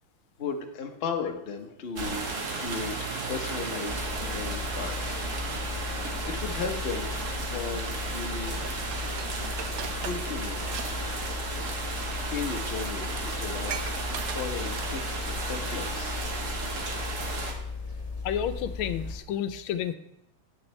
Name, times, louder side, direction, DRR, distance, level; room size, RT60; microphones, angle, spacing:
voice 1, 0.4-2.2 2.5-5.3 5.7-7.1 7.4-8.6 9.4-10.6 10.9-11.1 11.5-11.8 12.3-16.2, left 5 dB, 55° left, 4 dB, 0.6 m, -36 dB
sound 1, 2.0-17.5, right 3 dB, 45° right, 1.2 m, -34 dB
sound 2, 3.9-19.2, left 4 dB, 25° left, 0.9 m, -36 dB
Dishes pots and pans, 8.5-10.9 11.2-11.4 12.2-12.3 12.7-12.8 13.0-15.2 15.6-15.7, right 8 dB, 80° right, 0.7 m, -40 dB
voice 2, 18.2-20.0, left 9 dB, 80° left, 11 dB, 1.4 m, -30 dB
8.9 x 8.9 x 3.2 m, 0.83 s
omnidirectional pair, 2.3 m